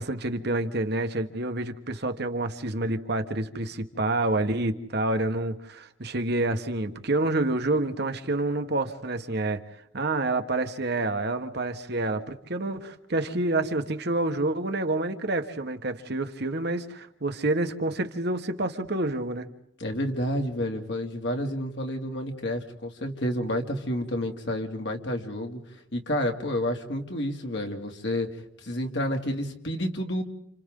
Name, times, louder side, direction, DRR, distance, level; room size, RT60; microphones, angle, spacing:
voice 1, 0.0-9.6 9.9-19.5, right 2 dB, 55° right, 7 dB, 1.5 m, -28 dB
voice 2, 19.8-25.6 25.9-30.2, left 1 dB, 60° left, 3 dB, 2.7 m, -30 dB
30.0 x 28.5 x 3.9 m, 0.77 s
head